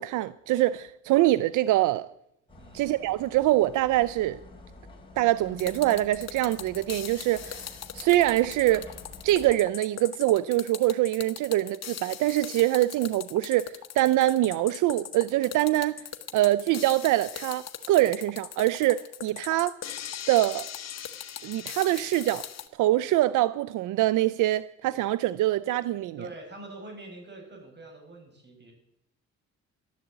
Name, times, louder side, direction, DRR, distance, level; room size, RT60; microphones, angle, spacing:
voice 1, 0.0-2.1 2.7-4.4 5.2-8.9 9.2-16.0 16.3-19.7 20.3-20.7 21.4-22.5 22.8-26.2, right 15 dB, 85° right, 0.5 m, -24 dB
sound 1, 2.5-9.5, left 2 dB, 15° left, 3.7 m, -48 dB
sound 2, 5.6-22.7, left 9 dB, 60° left, 1.3 m, -40 dB
voice 2, 26.2-28.7, right 2 dB, 35° right, 6.1 m, -44 dB
12.0 x 10.5 x 8.0 m
cardioid pair, 90°, 30 cm